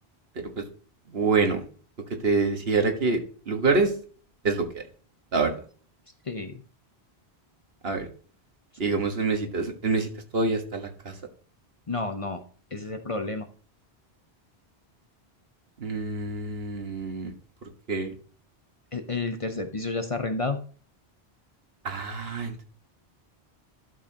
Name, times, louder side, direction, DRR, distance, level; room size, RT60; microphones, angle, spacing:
voice 1, 1.1-1.6 2.2-3.2 3.5-3.9 4.4-4.8 5.3-5.5 7.8-8.1 8.8-11.1 15.8-17.3 17.6-18.2 21.8-22.6, right 4 dB, 70° right, 5 dB, 1.6 m, -26 dB
voice 2, 6.3-6.6 11.9-12.4 12.7-13.5 18.9-20.6, left 3 dB, 35° left, 7 dB, 0.7 m, -30 dB
11.5 x 6.4 x 2.8 m, 0.41 s
omnidirectional pair, 1.1 m